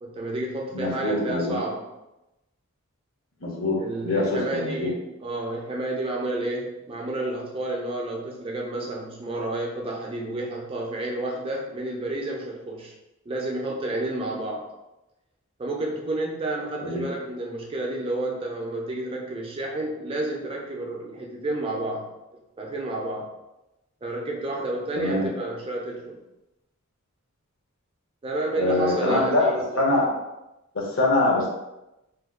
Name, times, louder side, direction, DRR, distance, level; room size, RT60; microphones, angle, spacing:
voice 1, 0.0-1.9 3.8-12.9 13.3-14.7 15.6-22.1 22.6-23.3 24.0-26.2 28.2-29.8, right 2 dB, 25° right, -1 dB, 0.4 m, -30 dB
voice 2, 0.7-1.6 3.4-4.9 16.8-17.1 25.0-25.3 28.5-30.1 30.7-31.5, left 2 dB, 60° left, -2 dB, 0.8 m, -24 dB
2.9 x 2.2 x 3.6 m, 0.94 s
head